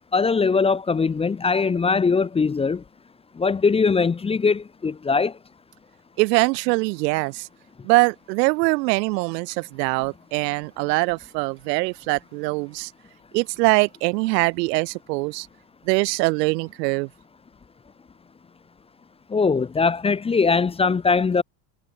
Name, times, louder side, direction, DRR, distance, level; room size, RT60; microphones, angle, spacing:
voice 1, 0.1-2.8 3.4-5.3 19.3-21.4, left 5 dB, 10° left, 1.1 m, -21 dB
voice 2, 6.2-7.5 7.8-12.9 13.3-15.5 15.9-17.1, right 26 dB, 75° right, 1.8 m, -23 dB
cardioid pair, 165°, 49 cm